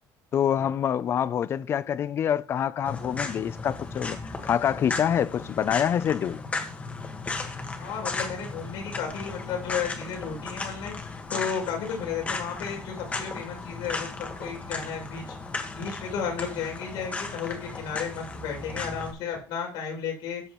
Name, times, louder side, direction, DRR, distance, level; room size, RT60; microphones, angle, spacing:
voice 1, 0.3-6.4, left 9 dB, 35° left, 0.5 m, -26 dB
sound 1, 2.8-19.1, left 3 dB, 20° left, 1.6 m, -36 dB
voice 2, 7.8-15.3 15.7-20.4, left 7 dB, 70° left, 6.6 m, -33 dB
13.0 x 8.5 x 3.1 m
cardioid pair, 160°, 7 cm